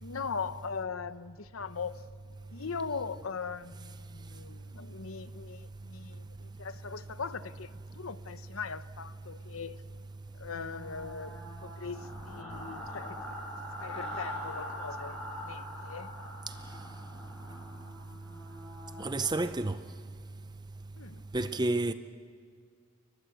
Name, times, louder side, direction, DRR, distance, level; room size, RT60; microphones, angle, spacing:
voice 1, 0.0-2.0 2.5-9.8 10.3-11.4 11.6-13.4 13.8-16.1 21.0-21.2, left 5 dB, 85° left, 0.9 m, -40 dB
sound 1, 10.5-19.3, equal, 5° left, 7.1 m, -43 dB
voice 2, 19.0-19.8 21.3-21.9, right 2 dB, 20° right, 0.6 m, -29 dB
29.5 x 23.5 x 8.3 m
head